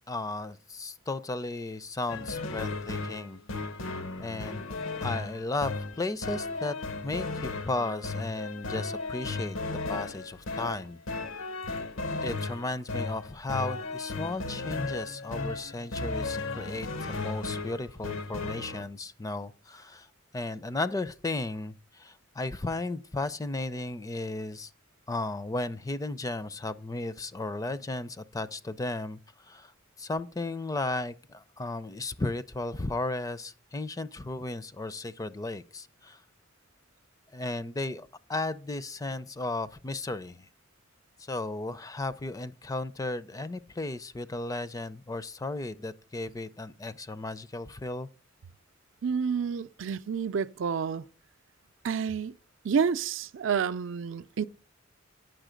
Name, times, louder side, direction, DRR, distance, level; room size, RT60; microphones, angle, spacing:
voice 1, 0.1-3.4 4.2-4.7 5.0-6.7 7.0-9.6 9.9-11.0 11.3-11.5 12.2-20.1 20.3-24.7 25.1-29.7 30.0-36.2 37.3-40.5 41.2-48.1, left 2 dB, 15° left, 0.4 m, -35 dB
sound 1, 2.1-18.8, left 3 dB, 80° left, 0.9 m, -35 dB
voice 2, 49.0-51.1 51.8-52.3 52.6-54.4, right 6 dB, 70° right, 0.4 m, -29 dB
9.1 x 6.3 x 5.0 m
head